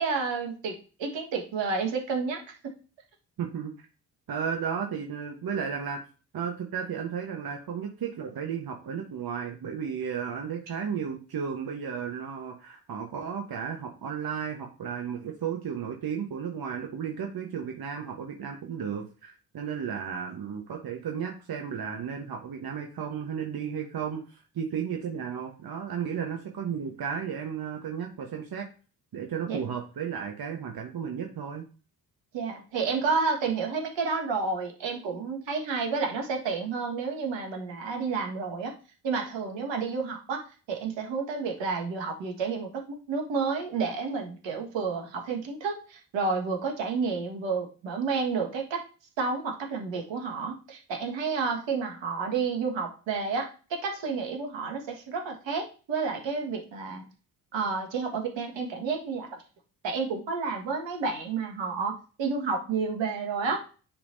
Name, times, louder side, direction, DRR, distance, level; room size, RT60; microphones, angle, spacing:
voice 1, 0.0-2.6 29.5-29.6 32.3-38.7 39.0-40.4 40.7-48.8 49.2-57.0 57.5-59.4 59.8-63.6, right 4 dB, 60° right, 2 dB, 1.7 m, -30 dB
voice 2, 3.4-3.7 4.3-6.0 6.3-28.7 29.1-31.6, right 7 dB, 45° right, 2 dB, 1.3 m, -34 dB
9.9 x 3.5 x 2.7 m, 0.36 s
hypercardioid pair, 40°, 50 cm